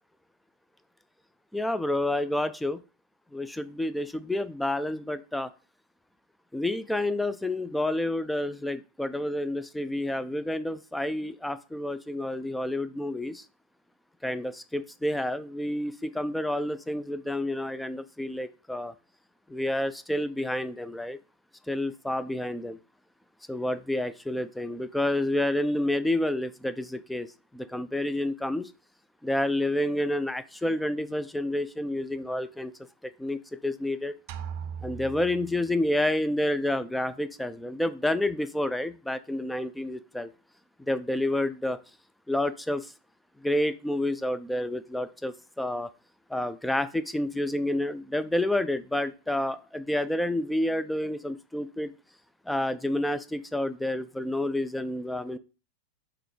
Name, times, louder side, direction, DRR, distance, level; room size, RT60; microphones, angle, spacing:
voice 1, 1.5-2.8 3.3-5.5 6.5-13.4 14.2-18.9 19.5-21.2 21.7-22.8 23.5-27.3 27.5-28.7 29.2-32.7 33.2-34.1 34.8-40.3 40.9-41.8 42.3-42.9 43.4-45.9 46.3-51.9 52.5-55.4, left 1 dB, 5° left, 13 dB, 0.4 m, -29 dB
sound 1, 34.3-36.1, right 7 dB, 45° right, 0.6 m, -39 dB
5.9 x 3.6 x 4.9 m, 0.33 s
figure-of-eight pair, 90°, 0 cm